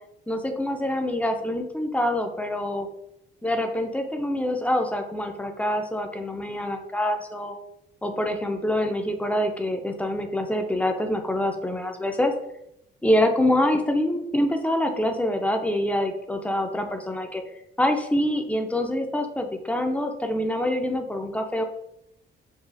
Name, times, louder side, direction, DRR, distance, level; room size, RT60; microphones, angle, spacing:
voice 1, 0.3-2.9 3.4-7.5 8.0-12.3 13.0-17.4 17.8-21.6, left 1 dB, 5° left, 5 dB, 0.4 m, -25 dB
3.9 x 2.4 x 2.4 m, 0.81 s
cardioid pair, 90°, 20 cm